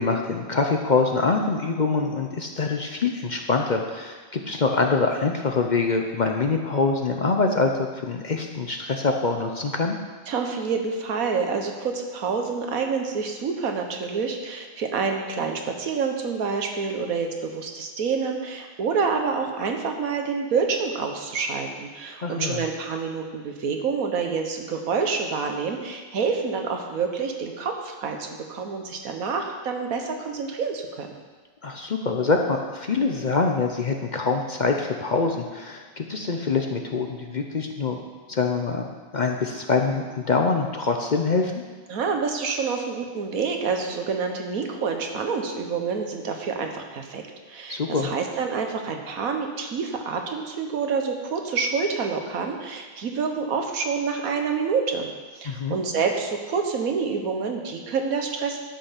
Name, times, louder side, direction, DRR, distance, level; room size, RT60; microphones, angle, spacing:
voice 1, 0.0-10.0 22.2-22.6 31.6-38.0 38.3-41.5 47.7-48.1 55.4-55.8, left 4 dB, 45° left, 3 dB, 0.6 m, -24 dB
voice 2, 10.3-31.1 41.9-47.2 47.5-55.1 55.4-58.6, right 5 dB, 90° right, 3 dB, 1.5 m, -27 dB
12.0 x 5.6 x 5.7 m, 1.4 s
omnidirectional pair, 1.4 m